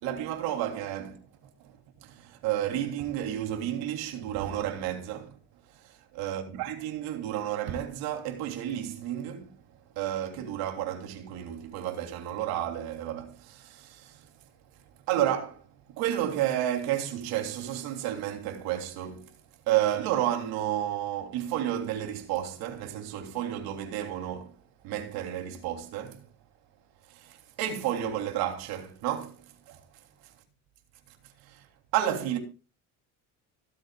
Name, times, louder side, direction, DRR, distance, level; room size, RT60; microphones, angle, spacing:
voice 1, 0.0-1.2 1.6-5.4 5.7-5.8 6.1-9.6 9.9-14.3 15.1-19.3 19.7-24.6 24.8-26.2 27.1-29.8 31.4-31.6 31.9-32.4, right 11 dB, 80° right, 3.3 m, -31 dB
24.5 x 8.5 x 2.4 m
cardioid pair, 140°, 37 cm